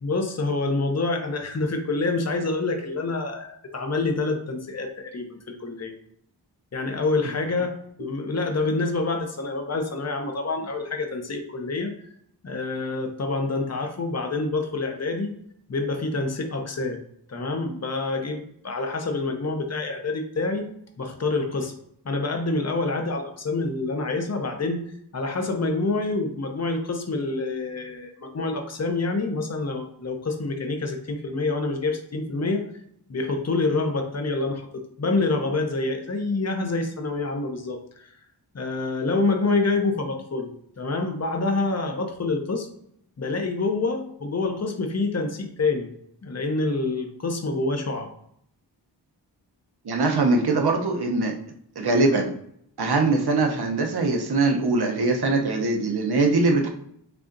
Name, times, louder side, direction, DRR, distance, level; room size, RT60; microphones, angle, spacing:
voice 1, 0.0-5.9 6.7-11.9 12.4-15.3 15.7-17.0 17.3-20.7 21.0-21.7 22.0-24.8 25.1-32.6 33.1-34.7 35.0-38.1 38.5-40.5 40.8-42.7 43.2-45.9 46.2-48.1, left 3 dB, 35° left, 4 dB, 0.7 m, -27 dB
voice 2, 49.8-51.3 51.8-52.3 52.8-56.7, right 3 dB, 60° right, 2 dB, 0.8 m, -22 dB
6.7 x 2.4 x 2.6 m, 0.69 s
wide cardioid pair, 85°, 43 cm